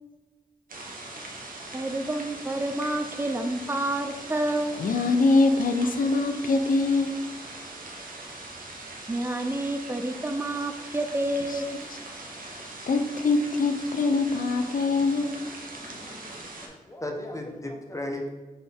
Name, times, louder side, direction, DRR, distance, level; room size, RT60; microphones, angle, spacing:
sound 1, 0.7-16.7, right 2 dB, 65° right, 0.8 m, -41 dB
voice 1, 1.7-4.8 9.1-11.7, right 1 dB, 15° right, 7 dB, 0.5 m, -29 dB
voice 2, 4.8-7.2 12.9-15.4, left 3 dB, 65° left, 6 dB, 0.5 m, -23 dB
voice 3, 16.6-18.3, left 1 dB, 20° left, 2 dB, 0.8 m, -35 dB
3.9 x 3.7 x 3.6 m, 1.2 s
cardioid pair, 50°, 15 cm